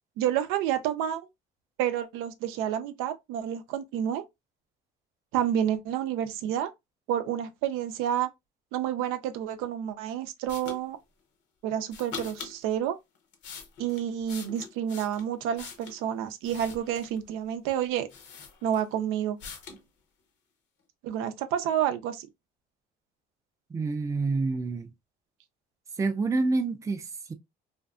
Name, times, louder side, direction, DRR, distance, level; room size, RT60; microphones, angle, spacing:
voice 1, 0.2-1.2 1.8-4.2 5.3-6.7 7.1-8.3 8.7-11.0 11.6-13.0 13.8-18.1 18.6-19.4 21.0-22.3, right 10 dB, 85° right, 0.5 m, -29 dB
sound 1, 10.5-10.8 11.9-12.6 13.2-16.0 16.4-17.2 17.8-17.9 18.1-19.0 19.4-19.8, left 6 dB, 60° left, 0.8 m, -43 dB
voice 2, 23.7-24.9 26.0-27.3, right 3 dB, 15° right, 0.4 m, -28 dB
2.5 x 2.3 x 2.3 m
cardioid pair, 105°, 21 cm